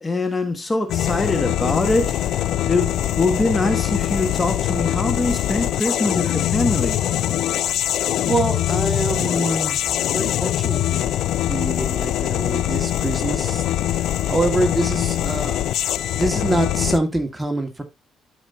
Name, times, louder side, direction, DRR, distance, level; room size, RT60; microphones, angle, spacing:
voice 1, 0.0-2.1 2.6-7.0, left 2 dB, 20° left, 1.4 m, -23 dB
sound 1, 0.9-17.0, left 12 dB, 80° left, 0.4 m, -23 dB
voice 2, 8.3-9.8 10.1-11.1 11.5-13.6 14.3-15.6 16.1-17.8, right 1 dB, 10° right, 1.9 m, -25 dB
12.0 x 5.2 x 2.7 m
cardioid pair, 90°, 0 cm